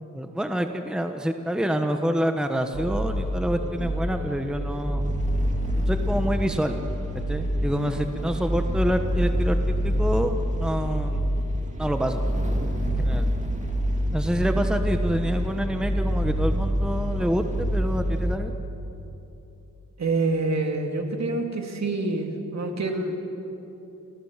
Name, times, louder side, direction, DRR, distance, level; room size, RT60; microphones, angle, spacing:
voice 1, 0.1-5.0 5.9-6.7 7.3-9.6 9.8-11.3 11.8-12.2 13.0-13.3 14.1-18.5, equal, ahead, 6 dB, 1.1 m, -27 dB
sound 1, 2.7-18.3, equal, 25° right, 2.5 m, -26 dB
voice 2, 20.0-23.1, right 3 dB, 55° right, 3 dB, 2.5 m, -26 dB
30.0 x 15.0 x 7.4 m, 3.0 s
wide cardioid pair, 110°, 31 cm